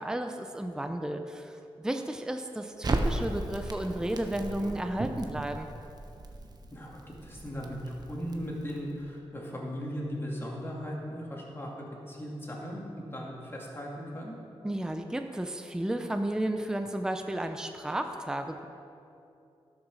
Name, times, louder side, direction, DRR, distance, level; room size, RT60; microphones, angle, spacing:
voice 1, 0.0-5.7 14.6-18.7, right 1 dB, 5° right, 6 dB, 0.6 m, -33 dB
Crackle, 2.8-9.0, right 2 dB, 40° right, 0.9 m, -36 dB
voice 2, 6.7-14.4, equal, 20° left, -3 dB, 2.4 m, -38 dB
12.0 x 6.3 x 6.2 m, 2.7 s
wide cardioid pair, 95°, 10 cm